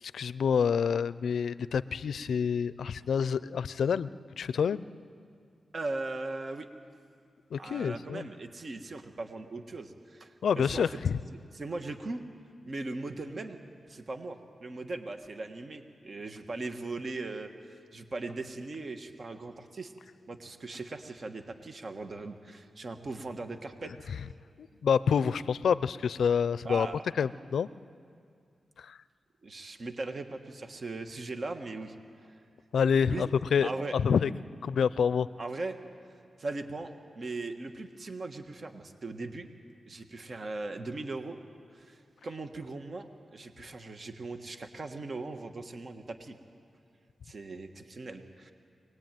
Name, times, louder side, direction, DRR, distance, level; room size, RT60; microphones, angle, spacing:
voice 1, 0.0-4.1 4.4-4.9 7.5-8.3 10.4-11.2 23.9-24.0 24.6-26.9 27.1-27.7 28.8-29.0 32.7-34.3 34.6-35.3, left 7 dB, 80° left, 17 dB, 0.5 m, -27 dB
voice 2, 5.7-6.7 7.6-10.9 11.5-12.2 12.6-13.6 13.9-17.5 17.9-19.9 20.3-23.9 26.6-27.0 29.4-31.9 33.1-33.3 33.6-34.0 35.4-35.8 36.4-39.5 39.9-41.4 41.7-46.4 47.2-48.5, right 3 dB, 50° right, 6 dB, 1.5 m, -39 dB
23.5 x 19.0 x 9.2 m, 2.3 s
cardioid pair, 75°, 0 cm